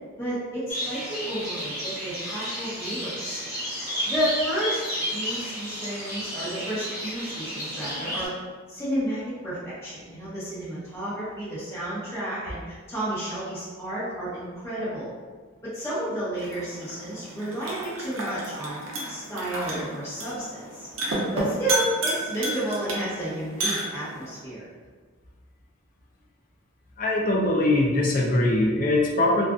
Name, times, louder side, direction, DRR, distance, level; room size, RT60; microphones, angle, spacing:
voice 1, 0.2-3.4 4.0-4.8 5.1-8.3 8.7-15.1 15.6-18.8 19.1-20.9 21.3-24.7, right 1 dB, 10° left, -11 dB, 0.8 m, -31 dB
sound 1, 0.7-8.3, equal, 10° right, 1.2 m, -32 dB
sound 2, 16.4-24.4, right 1 dB, 70° right, 0.6 m, -32 dB
voice 2, 27.0-29.4, left 2 dB, 40° left, -3 dB, 0.4 m, -22 dB
2.4 x 2.4 x 2.3 m, 1.5 s
head